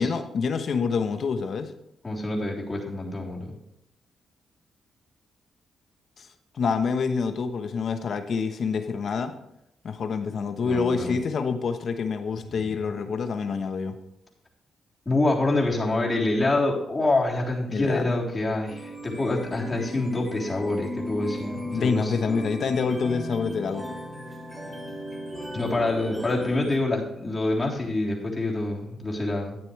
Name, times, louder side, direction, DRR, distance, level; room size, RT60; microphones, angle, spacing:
voice 1, 0.0-1.7 6.2-6.3 6.6-9.3 9.8-14.0 17.7-18.1 21.7-23.8, left 5 dB, 60° left, 8 dB, 1.1 m, -27 dB
voice 2, 2.0-3.6 10.6-11.1 12.5-12.6 15.1-22.5 25.5-29.6, left 2 dB, 30° left, -3 dB, 3.5 m, -26 dB
sound 1, 18.7-26.8, equal, 5° right, 3.7 m, -36 dB
12.5 x 9.0 x 3.3 m, 0.81 s
cardioid pair, 65°, 0 cm